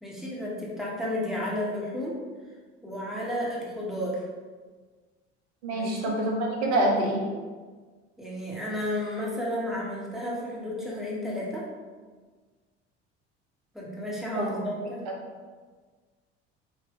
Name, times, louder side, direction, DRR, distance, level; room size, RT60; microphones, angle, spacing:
voice 1, 0.0-2.2 2.8-4.2 5.7-6.2 8.2-11.7 13.7-15.0, left 1 dB, ahead, -4 dB, 1.2 m, -32 dB
voice 2, 5.6-7.2 14.3-14.5, right 1 dB, 70° right, -1 dB, 0.9 m, -26 dB
4.7 x 2.6 x 3.6 m, 1.4 s
figure-of-eight pair, 60°, 33 cm